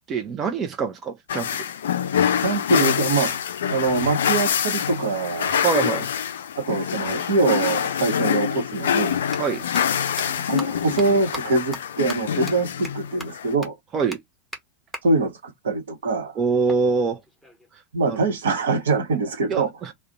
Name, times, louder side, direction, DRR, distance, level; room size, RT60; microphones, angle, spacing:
voice 1, 0.1-1.5 5.6-6.1 9.4-9.6 13.9-14.2 16.4-17.2 17.7-17.8 18.1-18.2 19.5-19.9, right 5 dB, 25° right, 0.4 m, -24 dB
sound 1, 1.3-13.5, left 8 dB, 60° left, 0.4 m, -25 dB
voice 2, 2.4-3.4 3.7-5.6 6.6-9.2 10.2-13.8 15.0-16.4 17.9-19.9, right 3 dB, 65° right, 0.9 m, -24 dB
sound 2, 9.3-9.4 9.7-9.8 10.2-10.3 10.6-10.7 11.0-11.1 11.3-11.4 11.7-11.8 12.1-12.2 12.5-12.6 12.8-12.9 13.2-13.3 13.6-13.7 14.1-14.2 14.5-14.6 14.9-15.0 16.7-17.7, equal, ahead, 0.9 m, -36 dB
2.4 x 2.1 x 3.8 m
figure-of-eight pair, 90°, 0 cm